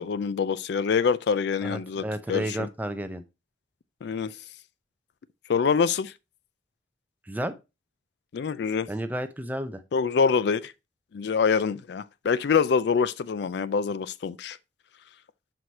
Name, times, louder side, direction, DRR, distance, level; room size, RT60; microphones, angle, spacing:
voice 1, 0.0-2.7 4.0-4.3 5.5-6.1 8.3-8.9 9.9-10.7 11.1-14.6, left 6 dB, 65° left, 0.4 m, -25 dB
voice 2, 1.6-3.2 7.3-7.5 8.9-9.8, right 1 dB, 10° right, 0.6 m, -32 dB
6.1 x 4.8 x 4.0 m
head